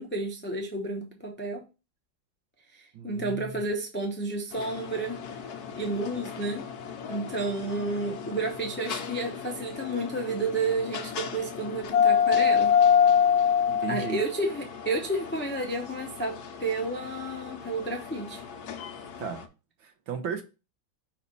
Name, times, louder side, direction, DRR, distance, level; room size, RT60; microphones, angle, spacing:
voice 1, 0.0-1.6 2.8-5.2 5.8-6.6 7.1-12.7 13.9-18.4, right 2 dB, 15° left, 2 dB, 0.3 m, -31 dB
voice 2, 2.9-3.6 13.7-14.2 19.2-19.4 19.8-20.4, right 6 dB, 80° right, 7 dB, 1.7 m, -35 dB
sound 1, 4.5-19.4, left 8 dB, 65° left, 1.1 m, -28 dB
5.6 x 3.3 x 5.3 m, 0.30 s
omnidirectional pair, 2.1 m